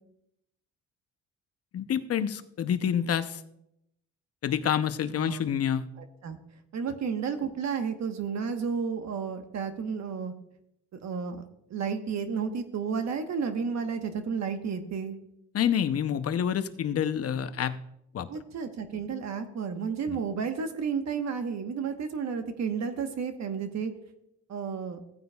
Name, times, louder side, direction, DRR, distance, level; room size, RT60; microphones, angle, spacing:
voice 1, 1.7-3.4 4.4-5.9 15.5-17.8 18.1-18.3 20.1-20.2, left 9 dB, 50° left, 11 dB, 0.7 m, -28 dB
voice 2, 6.7-10.3 11.0-11.4 11.7-15.1 18.3-23.9 24.5-25.0, right 6 dB, 65° right, 7 dB, 1.2 m, -32 dB
15.5 x 9.4 x 2.3 m, 0.79 s
cardioid pair, 90°, 30 cm